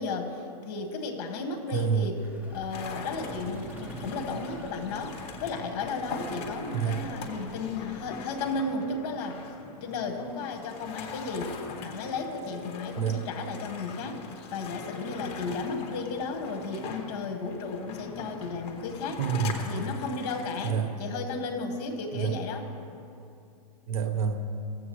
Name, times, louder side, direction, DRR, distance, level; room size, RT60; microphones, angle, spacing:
voice 1, 0.0-2.2 2.5-9.4 9.8-11.6 11.8-14.2 14.5-19.2 19.7-22.7, left 3 dB, 45° left, 4 dB, 1.4 m, -34 dB
voice 2, 1.7-2.1 6.7-7.0 13.0-13.2 19.2-19.7 20.6-20.9 22.1-22.4 23.9-24.5, right 7 dB, 65° right, 6 dB, 1.0 m, -28 dB
Vehicle, 2.1-8.5, right 2 dB, 10° right, 1.0 m, -46 dB
sound 1, 2.7-20.7, left 4 dB, 30° left, 1.0 m, -42 dB
16.5 x 7.5 x 3.1 m, 2.6 s
hypercardioid pair, 130°, 20 cm